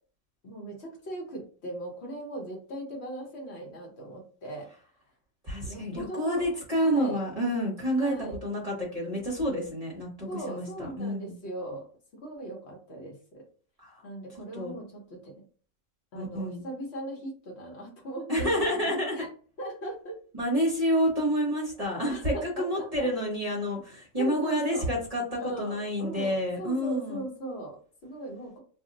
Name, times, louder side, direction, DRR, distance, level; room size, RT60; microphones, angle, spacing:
voice 1, 0.4-4.7 5.7-7.2 8.0-8.4 10.3-11.9 12.2-13.5 14.0-15.3 16.1-19.3 19.6-20.2 22.1-23.1 24.2-24.9 25.4-28.6, right 1 dB, 60° left, -1 dB, 1.0 m, -39 dB
voice 2, 5.4-11.3 13.8-14.0 14.5-14.7 16.1-16.7 18.3-19.1 20.3-27.2, equal, 35° right, -3 dB, 0.9 m, -29 dB
2.5 x 2.0 x 3.7 m, 0.43 s
omnidirectional pair, 1.4 m